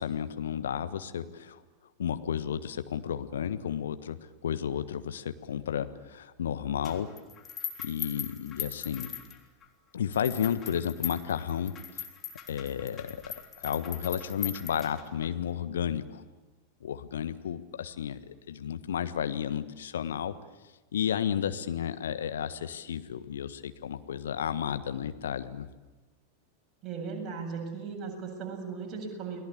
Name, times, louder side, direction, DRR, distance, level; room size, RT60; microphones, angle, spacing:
voice 1, 0.0-1.6 2.0-4.2 4.4-7.1 7.8-9.1 9.9-12.0 12.5-16.2 16.8-20.3 20.9-25.7, left 9 dB, 65° left, 10 dB, 1.4 m, -32 dB
sound 1, 6.8-9.7 10.1-15.3, left 8 dB, 25° left, 3.5 m, -40 dB
voice 2, 26.8-29.4, right 5 dB, 30° right, 1 dB, 7.9 m, -37 dB
30.0 x 21.0 x 8.6 m, 1.2 s
figure-of-eight pair, 90°, 0 cm